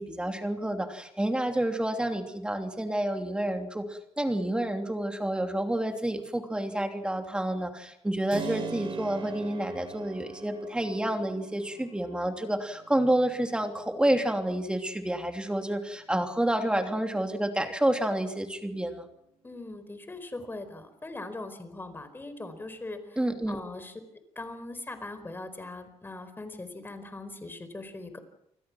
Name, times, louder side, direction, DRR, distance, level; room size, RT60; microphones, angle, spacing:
voice 1, 0.0-19.1 23.2-23.6, right 1 dB, 10° right, 5 dB, 3.1 m, -29 dB
Keyboard (musical), 8.3-16.9, right 6 dB, 50° right, 6.4 m, -44 dB
voice 2, 19.4-23.2 23.5-24.0 24.3-28.2, left 2 dB, 20° left, 10 dB, 4.6 m, -40 dB
29.0 x 21.0 x 6.2 m, 0.77 s
cardioid pair, 110°, 11 cm